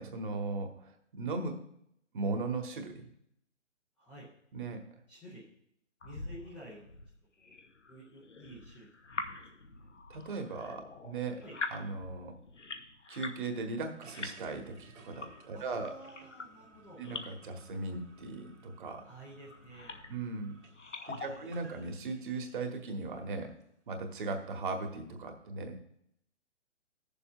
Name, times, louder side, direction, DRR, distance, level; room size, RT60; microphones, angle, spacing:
voice 1, 0.0-1.6 2.1-3.1 4.5-4.8 10.1-11.4 11.7-12.4 13.1-15.9 17.0-19.0 20.1-20.6 21.1-23.5 23.9-25.8, right 3 dB, 45° right, 4 dB, 1.4 m, -38 dB
voice 2, 4.0-4.3 5.1-5.5 6.0-7.0 7.4-7.5 7.9-8.9 9.2-9.5 11.4-11.6 15.5-17.0 19.0-20.1 21.1-21.5, right 1 dB, 5° left, -8 dB, 0.5 m, -51 dB
sound 1, 6.0-13.5 13.8-17.4 18.1-18.7 19.4-20.2 20.6-21.5, left 3 dB, 80° left, 1.0 m, -45 dB
sound 2, 14.0-22.7, right 2 dB, 65° right, 1.8 m, -58 dB
15.5 x 7.0 x 2.4 m, 0.73 s
figure-of-eight pair, 135°, 36 cm